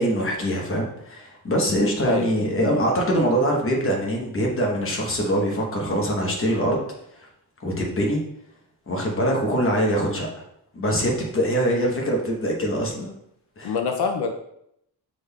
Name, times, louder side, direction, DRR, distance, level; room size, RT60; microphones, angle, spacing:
voice 1, 0.0-6.8 7.2-7.3 7.6-8.2 8.9-10.3 10.7-13.1 13.6-13.7, equal, 30° left, -1 dB, 1.0 m, -23 dB
voice 2, 2.0-2.8 13.6-14.3, left 5 dB, 75° left, 5 dB, 0.5 m, -26 dB
6.1 x 3.5 x 2.3 m, 0.76 s
wide cardioid pair, 160°, 40 cm